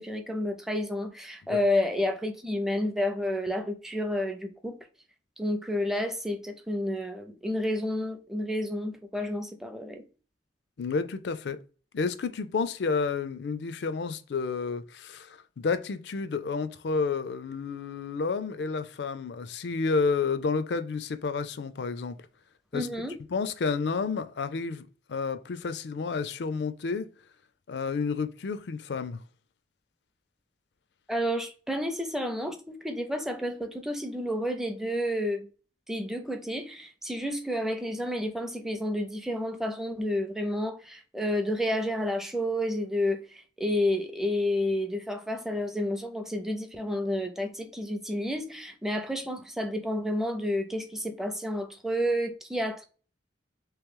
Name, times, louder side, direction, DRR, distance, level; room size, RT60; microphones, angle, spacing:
voice 1, 0.0-4.8 5.4-10.0 22.7-23.1 31.1-35.5 35.9-52.9, left 1 dB, ahead, 0.5 m, -30 dB
voice 2, 10.8-11.6 11.9-22.2 22.7-22.9 23.3-27.1 27.7-29.2, left 4 dB, 70° left, 0.4 m, -30 dB
3.1 x 3.0 x 3.6 m
head